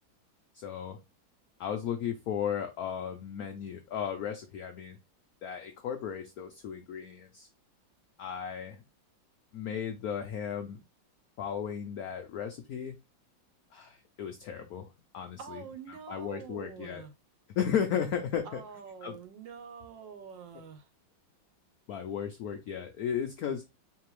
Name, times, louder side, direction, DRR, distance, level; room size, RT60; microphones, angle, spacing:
voice 1, 0.5-1.0 1.6-5.0 5.4-7.5 8.2-8.8 9.5-10.8 11.4-12.9 13.7-14.9 15.1-15.6 15.9-17.0 17.6-18.6 19.0-19.2 21.9-23.6, left 8 dB, 90° left, 0.8 m, -35 dB
voice 2, 15.4-17.1 18.4-20.9, right 6 dB, 70° right, 1.4 m, -46 dB
3.9 x 3.3 x 3.1 m
omnidirectional pair, 2.2 m